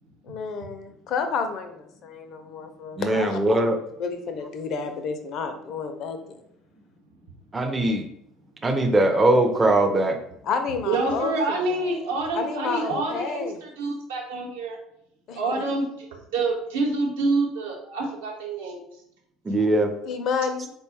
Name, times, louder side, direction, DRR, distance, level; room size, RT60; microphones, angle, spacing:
voice 1, 0.2-3.4 4.0-6.4 10.4-12.0 12.3-13.6 15.3-15.6 20.1-20.7, left 5 dB, 50° left, 7 dB, 0.4 m, -30 dB
voice 2, 3.0-3.8 7.5-8.1 8.6-10.2 19.4-19.9, right 1 dB, 20° right, 5 dB, 0.5 m, -21 dB
voice 3, 10.9-14.8 15.3-16.1 16.3-18.8, right 3 dB, 70° right, -2 dB, 0.9 m, -27 dB
4.0 x 2.2 x 3.2 m, 0.74 s
figure-of-eight pair, 60°, 0 cm